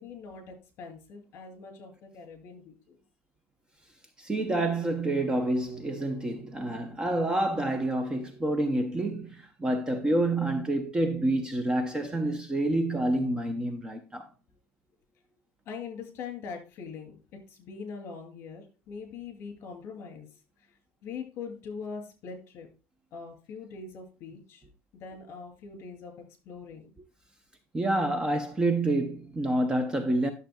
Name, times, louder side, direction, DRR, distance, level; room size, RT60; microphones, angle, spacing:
voice 1, 0.0-3.0 12.3-12.4 15.1-15.2 15.7-17.2 17.5-20.4 21.0-22.7 23.1-24.6 24.9-27.0, left 5 dB, 45° left, 2.5 m, -42 dB
voice 2, 4.2-14.3 27.7-30.3, right 1 dB, 15° right, 0.6 m, -28 dB
11.5 x 6.6 x 2.2 m
cardioid pair, 170°, 6 cm